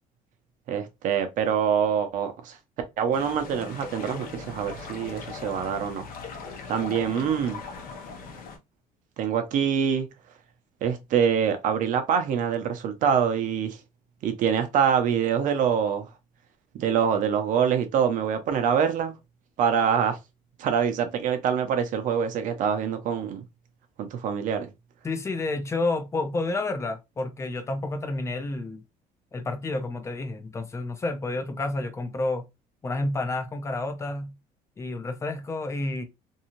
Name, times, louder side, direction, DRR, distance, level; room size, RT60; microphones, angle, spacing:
voice 1, 0.7-2.6 3.0-6.0 6.7-7.6 9.2-10.1 10.8-13.8 14.2-16.1 16.7-19.1 19.6-20.2 20.6-23.4 24.0-24.7, right 7 dB, 55° right, 0.7 m, -25 dB
sound 1, 3.1-8.6, left 4 dB, 65° left, 0.8 m, -39 dB
voice 2, 25.0-28.8 29.3-32.5 32.8-34.3 34.8-36.0, left 2 dB, 20° left, 0.5 m, -30 dB
2.7 x 2.4 x 2.9 m
cardioid pair, 130°, 16 cm